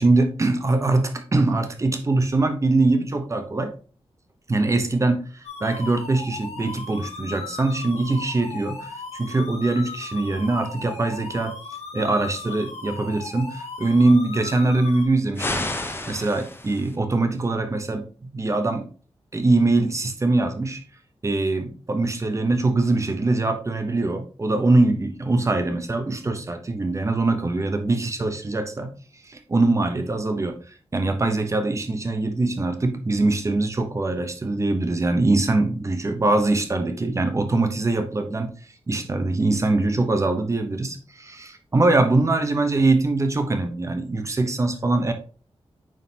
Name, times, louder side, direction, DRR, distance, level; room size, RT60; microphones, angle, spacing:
voice 1, 0.0-3.7 4.5-11.5 11.9-15.7 16.1-18.9 19.3-20.8 21.2-29.0 29.2-38.5 38.9-45.1, right 2 dB, 30° right, 7 dB, 0.8 m, -22 dB
sound 1, 5.4-15.1, left 4 dB, 80° left, 1.6 m, -37 dB
sound 2, 15.4-17.0, left 2 dB, 20° left, 0.8 m, -30 dB
9.2 x 3.9 x 2.8 m, 0.39 s
wide cardioid pair, 175°, 11 cm